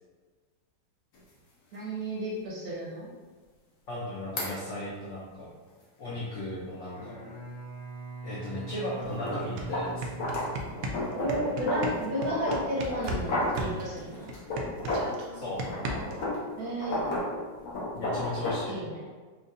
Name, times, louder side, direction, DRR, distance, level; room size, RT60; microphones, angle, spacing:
sound 1, 1.1-1.2 1.7-1.8 4.4-4.5 9.1-15.2 15.6-18.7, left 1 dB, 60° left, 1.1 m, -33 dB
voice 1, 1.7-3.1 11.1-14.3 16.6-17.0 18.6-19.1, right 1 dB, 65° right, -4 dB, 1.0 m, -32 dB
voice 2, 3.9-5.5 6.0-7.2 8.2-10.1 15.3-15.6 18.0-18.8, left 1 dB, 80° left, -6 dB, 0.6 m, -36 dB
Bowed string instrument, 6.9-11.2, right 2 dB, 20° left, 0.4 m, -42 dB
sound 2, 9.0-9.1 9.4-13.3 13.6-16.3, right 1 dB, 90° right, 0.7 m, -35 dB
4.5 x 2.4 x 2.5 m, 1.4 s
omnidirectional pair, 2.1 m